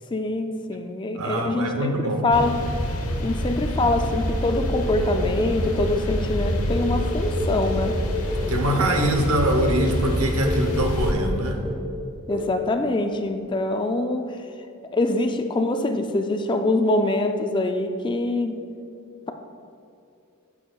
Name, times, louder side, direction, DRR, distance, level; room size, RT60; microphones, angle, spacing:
voice 1, 0.1-2.7 3.2-8.0 8.8-9.0 12.3-14.4 14.9-18.6, left 2 dB, 20° left, 6 dB, 0.3 m, -24 dB
voice 2, 1.2-2.3 8.3-11.6, right 1 dB, 75° right, 4 dB, 0.9 m, -23 dB
sound 1, 2.3-11.1, equal, 80° left, 1.0 m, -27 dB
sound 2, 4.5-5.9 6.5-9.3 9.8-10.0 10.4-10.7 11.1-11.4 11.7-12.0 12.3-12.6, left 1 dB, ahead, 1.1 m, -31 dB
10.5 x 7.2 x 2.3 m, 2.6 s
head